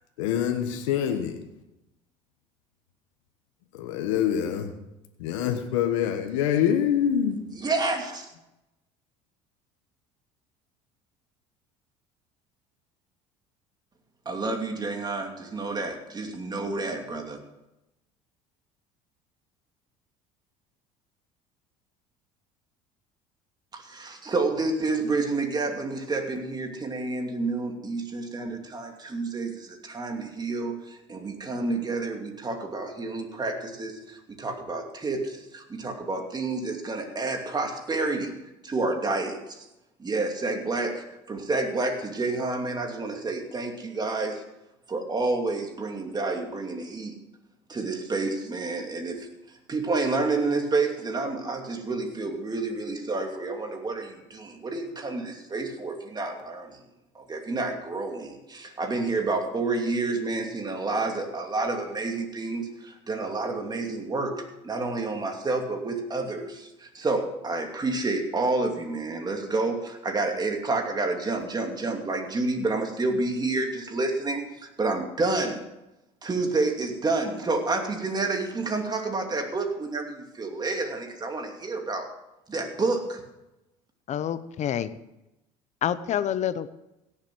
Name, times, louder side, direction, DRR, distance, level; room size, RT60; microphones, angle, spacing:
voice 1, 0.2-1.4 3.7-4.7 5.2-7.4, left 9 dB, 85° left, 6 dB, 1.2 m, -25 dB
voice 2, 7.6-8.3 14.3-17.4 23.7-38.3 38.6-39.7 40.0-44.4 44.9-47.1 47.7-49.3 49.7-56.8 57.1-75.6 76.2-82.1 82.5-83.2, right 3 dB, 25° right, 3 dB, 2.6 m, -29 dB
voice 3, 84.1-85.0 85.8-86.7, left 10 dB, 45° left, 15 dB, 0.8 m, -27 dB
16.5 x 7.4 x 6.2 m, 0.93 s
supercardioid pair, 85°, 16 cm